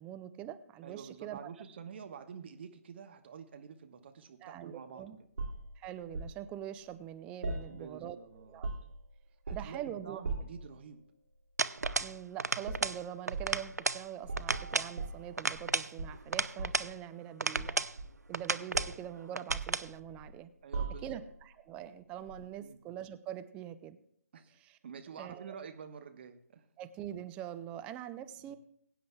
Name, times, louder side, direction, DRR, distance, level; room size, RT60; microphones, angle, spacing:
voice 1, 0.0-1.4 4.4-5.2 5.8-8.7 9.5-10.2 12.0-17.9 18.3-20.5 21.0-24.0 24.6-24.8 25.2-25.5 26.8-28.6, right 11 dB, 10° right, 11 dB, 0.4 m, -44 dB
voice 2, 0.8-5.3 7.5-8.6 9.5-11.0 20.6-21.2 22.4-22.8 24.3-26.7 28.4-28.6, right 7 dB, 45° right, 7 dB, 1.1 m, -48 dB
sound 1, 5.4-6.4 7.4-8.2 8.4-9.0 9.5-9.8 10.2-10.7 11.8-12.1 12.6-12.9 13.3-13.6 14.2-15.7 16.0-16.9 17.6-18.4 18.7-19.0 19.5-20.3 20.7-21.3 22.3-22.4, right 3 dB, 65° right, 2.2 m, -39 dB
sound 2, 11.6-12.1 12.4-13.0 13.3-14.0 14.4-14.9 15.4-16.9 17.4-17.9 18.3-18.9 19.3-19.9, right 3 dB, 85° right, 0.5 m, -33 dB
21.5 x 9.2 x 2.3 m, 0.68 s
figure-of-eight pair, 145°, 9 cm